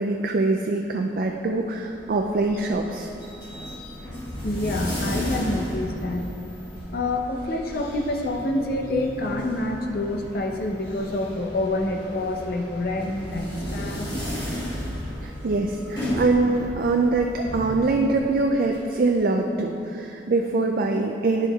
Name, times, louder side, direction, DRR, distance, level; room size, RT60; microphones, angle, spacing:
voice 1, 0.0-3.1 15.2-21.5, right 3 dB, 50° right, 2 dB, 0.3 m, -23 dB
sound 1, 1.7-18.8, equal, 25° left, 1.7 m, -34 dB
voice 2, 4.4-6.3 6.9-14.1, left 1 dB, 55° left, 2 dB, 0.6 m, -27 dB
10.5 x 7.0 x 2.3 m, 2.7 s
head